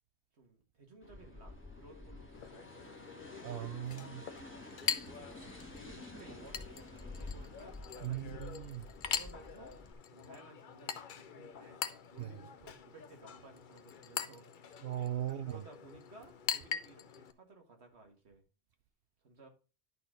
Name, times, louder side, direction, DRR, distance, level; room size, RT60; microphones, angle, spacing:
voice 1, 0.3-3.7 4.7-9.8 10.1-14.8 15.3-18.4 19.2-19.5, right 3 dB, 85° right, 2.1 m, -58 dB
sound 1, 1.0-9.9, left 2 dB, 10° left, 1.6 m, -50 dB
Chink clink, 2.3-17.3, left 7 dB, 55° left, 0.7 m, -43 dB
voice 2, 3.4-4.2 8.0-8.9 12.2-12.3 14.8-15.7, right 11 dB, 65° right, 0.8 m, -38 dB
11.0 x 4.1 x 5.1 m
omnidirectional pair, 1.1 m